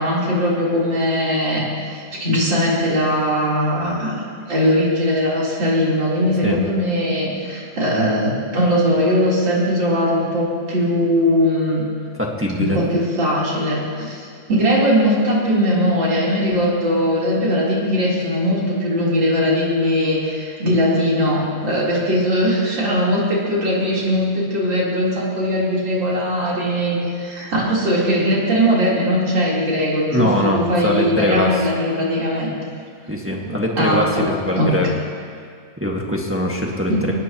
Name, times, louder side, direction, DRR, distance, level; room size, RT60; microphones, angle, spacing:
voice 1, 0.0-4.2 4.5-11.8 12.6-32.5 33.8-34.8 36.9-37.1, equal, 75° right, -6 dB, 4.7 m, -20 dB
voice 2, 12.2-12.8 30.1-31.5 33.1-34.9 35.8-37.1, equal, 5° right, -1 dB, 1.5 m, -22 dB
23.5 x 18.5 x 3.0 m, 2.2 s
omnidirectional pair, 2.0 m